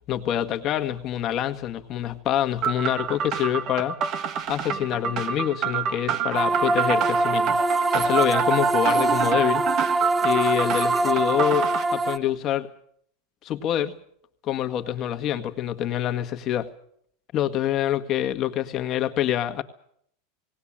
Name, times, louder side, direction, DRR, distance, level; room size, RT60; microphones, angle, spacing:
voice 1, 0.1-4.0 4.5-7.6 7.9-9.6 10.2-12.7 13.4-14.0 14.4-16.7 17.3-19.6, left 11 dB, 40° left, 7 dB, 1.7 m, -26 dB
sound 1, 2.6-11.8, right 8 dB, 40° right, 1.4 m, -28 dB
sound 2, 6.3-12.2, right 2 dB, 10° right, 1.1 m, -23 dB
18.5 x 18.5 x 8.8 m, 0.68 s
supercardioid pair, 130°, 0 cm